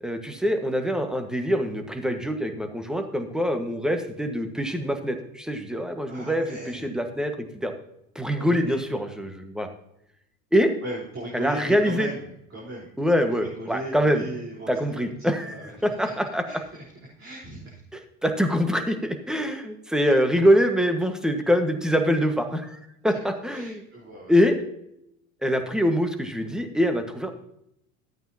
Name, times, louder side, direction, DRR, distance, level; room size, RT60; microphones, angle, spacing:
voice 1, 0.0-7.7 8.1-9.7 10.5-10.7 11.3-12.1 13.0-14.2 14.7-16.4 17.9-22.8 23.0-23.8 24.3-24.6 25.4-27.3, equal, ahead, 6 dB, 1.4 m, -24 dB
voice 2, 6.1-6.8 8.3-8.8 10.8-12.9 13.3-15.9 16.5-16.8 17.2-17.8 23.5-24.4, right 1 dB, 30° right, -5 dB, 4.0 m, -38 dB
13.5 x 8.8 x 2.8 m, 0.78 s
hypercardioid pair, 90°, 42 cm